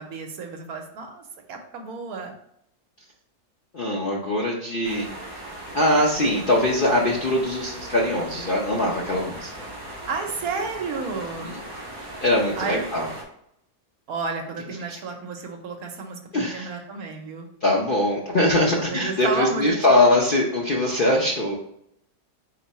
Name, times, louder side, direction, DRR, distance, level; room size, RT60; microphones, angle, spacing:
voice 1, 0.0-2.3 10.1-11.5 12.6-12.9 14.1-17.5 18.6-19.9, right 4 dB, 70° right, 3 dB, 1.1 m, -32 dB
voice 2, 3.7-5.1 5.7-9.5 11.1-11.6 12.2-13.1 14.9-15.0 16.3-16.7 17.6-21.5, left 1 dB, 50° left, -3 dB, 0.6 m, -22 dB
sound 1, 4.8-13.2, right 1 dB, 25° right, 1.7 m, -38 dB
4.5 x 2.9 x 4.0 m, 0.74 s
omnidirectional pair, 1.7 m